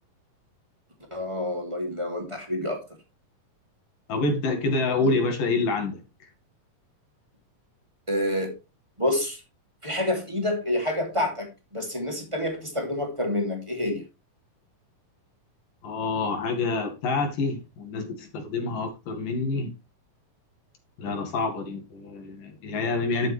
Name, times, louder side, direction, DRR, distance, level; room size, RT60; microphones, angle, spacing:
voice 1, 1.1-2.8 5.0-5.1 8.1-8.5 9.0-9.4 9.8-14.0, left 1 dB, 10° right, 2.3 m, -28 dB
voice 2, 4.1-6.0 15.8-19.7 21.0-23.3, left 3 dB, 90° left, 3.6 m, -27 dB
12.0 x 7.3 x 3.4 m
omnidirectional pair, 3.7 m